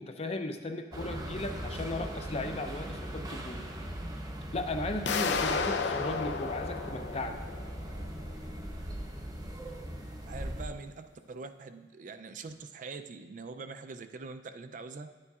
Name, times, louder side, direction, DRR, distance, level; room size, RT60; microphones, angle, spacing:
voice 1, 0.0-3.6 4.5-7.4, left 2 dB, 35° left, 7 dB, 0.6 m, -36 dB
sound 1, 0.9-10.7, right 1 dB, 20° right, 0.8 m, -40 dB
sound 2, 5.1-7.9, left 5 dB, 85° left, 0.6 m, -32 dB
voice 2, 10.3-15.1, right 4 dB, 50° right, 9 dB, 0.4 m, -43 dB
10.5 x 9.6 x 2.4 m, 1.3 s
head